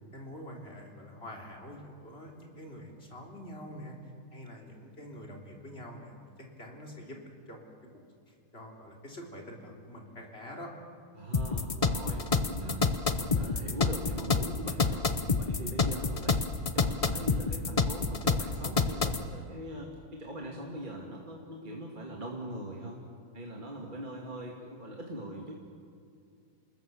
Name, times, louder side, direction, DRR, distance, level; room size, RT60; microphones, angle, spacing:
voice 1, 0.1-4.0 4.3-7.2 7.5-7.6 8.3-10.7, equal, 30° left, 0 dB, 3.8 m, -46 dB
voice 2, 11.1-12.9 13.2-15.1 15.4-16.5 16.7-23.0 23.3-25.6, right 1 dB, 25° right, -1 dB, 2.2 m, -41 dB
sound 1, 11.3-19.2, left 4 dB, 60° left, 0.3 m, -28 dB
28.0 x 20.5 x 7.0 m, 2.3 s
omnidirectional pair, 2.3 m